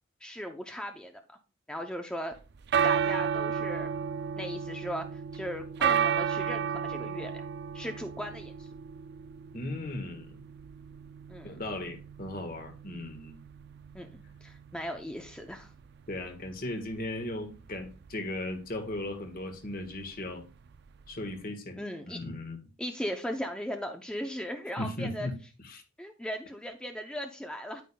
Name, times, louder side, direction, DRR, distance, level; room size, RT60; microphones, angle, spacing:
voice 1, 0.2-1.1 1.7-2.3 2.8-3.9 4.4-7.3 7.7-8.7 11.3-11.5 13.9-15.7 21.8-22.2 22.8-25.3 26.0-27.8, equal, 5° left, 0.6 m, -37 dB
sound 1, 2.3-21.4, right 7 dB, 50° right, 0.4 m, -34 dB
voice 2, 9.5-10.5 11.4-13.3 16.1-20.4 21.1-21.8 22.0-22.6 24.8-25.4 25.6-25.8, left 1 dB, 45° left, 1.5 m, -37 dB
10.5 x 9.2 x 2.3 m
head